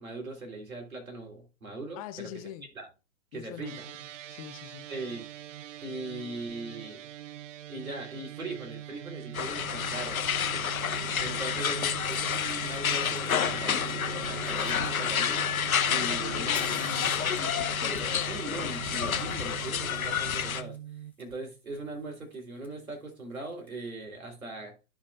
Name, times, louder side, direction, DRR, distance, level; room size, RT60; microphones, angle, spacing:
voice 1, 0.0-2.3 2.8-2.9 3.3-3.9 4.9-5.2 5.8-7.1 7.7-10.2 10.5-15.5 15.9-16.5 17.8-20.8 21.2-24.7, right 2 dB, 85° right, 3.5 m, -40 dB
voice 2, 2.0-2.7 3.3-3.8 4.3-4.9 16.0-17.3, left 13 dB, 25° left, 0.6 m, -42 dB
sound 1, 3.6-21.1, right 12 dB, 65° right, 0.5 m, -42 dB
Fire, 8.5-8.7 10.2-10.3 11.2-11.3 11.5-12.8 13.0-15.5 16.0-23.7, left 3 dB, 5° left, 1.4 m, -53 dB
sound 2, 9.3-20.6, left 8 dB, 85° left, 0.8 m, -29 dB
13.5 x 5.1 x 2.4 m
hypercardioid pair, 120°, 41 cm